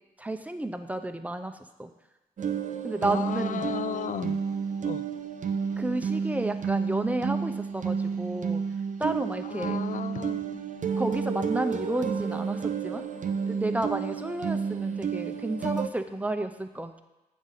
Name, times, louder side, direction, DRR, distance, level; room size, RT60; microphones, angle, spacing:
voice 1, 0.2-1.9 2.8-3.7 5.8-8.6 9.0-9.8 11.0-13.0 13.5-17.0, right 2 dB, 10° right, 7 dB, 0.8 m, -31 dB
sound 1, 2.4-15.9, right 6 dB, 60° right, 0.6 m, -31 dB
voice 2, 3.0-4.3 4.8-5.0 9.4-10.9, left 9 dB, 60° left, 15 dB, 0.4 m, -35 dB
8.0 x 5.1 x 5.7 m, 1.0 s
supercardioid pair, 45°, 15 cm